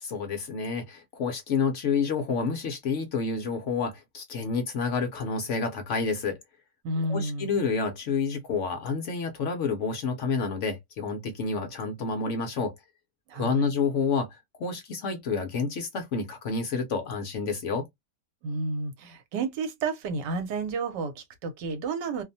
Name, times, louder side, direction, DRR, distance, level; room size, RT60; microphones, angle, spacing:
voice 1, 0.0-6.4 7.1-12.7 13.3-17.9, left 5 dB, 70° left, 0.7 m, -29 dB
voice 2, 6.8-7.6 13.3-13.7 18.4-22.2, right 3 dB, 80° right, 1.3 m, -31 dB
2.9 x 2.1 x 2.6 m
omnidirectional pair, 1.9 m